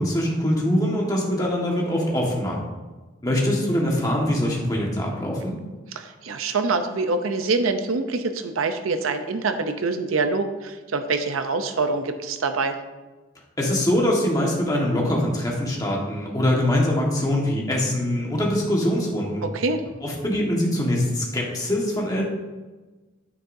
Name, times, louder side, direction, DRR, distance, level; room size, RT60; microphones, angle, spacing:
voice 1, 0.0-2.6 3.2-5.6 13.6-19.5 20.0-22.2, left 1 dB, 20° left, -2 dB, 1.6 m, -23 dB
voice 2, 5.9-12.8 19.4-19.8, right 3 dB, 90° right, 8 dB, 0.7 m, -25 dB
9.7 x 9.2 x 2.7 m, 1.2 s
head